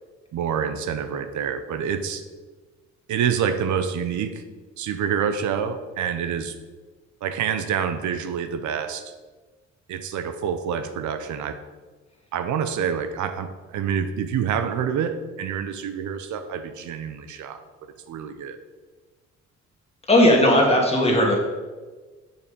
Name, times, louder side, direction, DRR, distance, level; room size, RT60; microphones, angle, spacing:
voice 1, 0.3-2.2 3.1-4.4 4.8-6.5 7.2-9.1 9.9-11.6 12.3-17.6 18.1-18.6, right 7 dB, 75° right, 9 dB, 0.7 m, -27 dB
voice 2, 20.1-21.3, left 1 dB, 20° left, 0 dB, 2.1 m, -17 dB
6.9 x 5.8 x 5.1 m, 1.3 s
cardioid pair, 90°, 30 cm